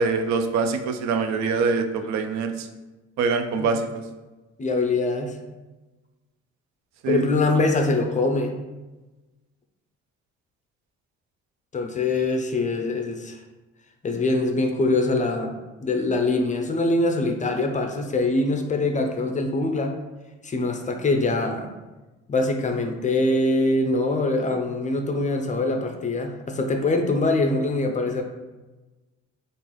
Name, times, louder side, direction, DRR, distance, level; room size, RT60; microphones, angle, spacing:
voice 1, 0.0-2.7 3.2-4.0 7.0-7.3, right 4 dB, 65° right, 7 dB, 0.5 m, -24 dB
voice 2, 4.6-5.3 7.1-8.6 11.7-13.4 14.0-19.9 20.4-21.7 22.3-28.2, left 2 dB, 25° left, 4 dB, 0.4 m, -23 dB
3.6 x 2.5 x 3.0 m, 1.1 s
supercardioid pair, 80°, 31 cm